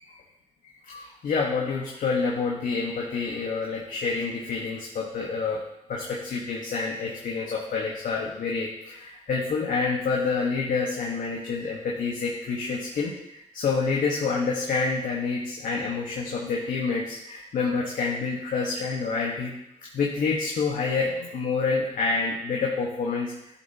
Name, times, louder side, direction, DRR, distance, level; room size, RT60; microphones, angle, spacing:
voice 1, 0.9-5.6 5.9-19.5 19.9-23.3, left 4 dB, 80° left, -3 dB, 1.5 m, -28 dB
12.5 x 7.4 x 2.9 m, 0.82 s
cardioid pair, 70°, 14 cm